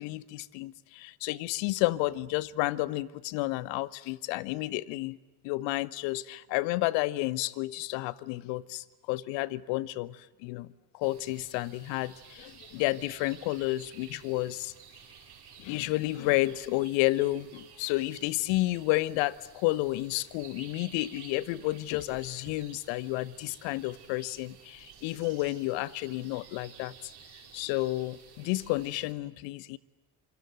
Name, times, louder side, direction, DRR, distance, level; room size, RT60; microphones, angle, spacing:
voice 1, 0.0-5.2 5.4-14.7 15.6-26.9 27.5-29.8, left 18 dB, 60° left, 1.2 m, -31 dB
sound 1, 11.0-29.1, right 7 dB, 50° right, 5.5 m, -53 dB
27.0 x 25.0 x 7.8 m
figure-of-eight pair, 45°, 50 cm